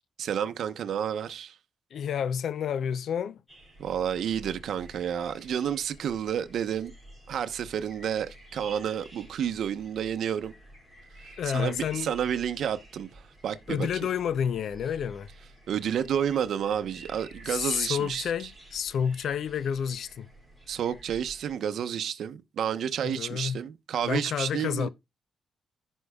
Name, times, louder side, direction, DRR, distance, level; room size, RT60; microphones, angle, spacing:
voice 1, 0.2-1.6 3.8-6.9 7.3-10.5 11.2-13.9 15.7-18.3 20.7-24.9, right 9 dB, 75° right, 0.9 m, -30 dB
voice 2, 1.9-3.4 11.4-12.1 13.7-15.3 17.5-20.3 23.0-23.6 24.0-24.9, left 8 dB, 70° left, 0.5 m, -30 dB
sound 1, 3.5-21.5, right 1 dB, 10° left, 5.1 m, -51 dB
16.0 x 5.4 x 2.3 m
cardioid pair, 115°, 0 cm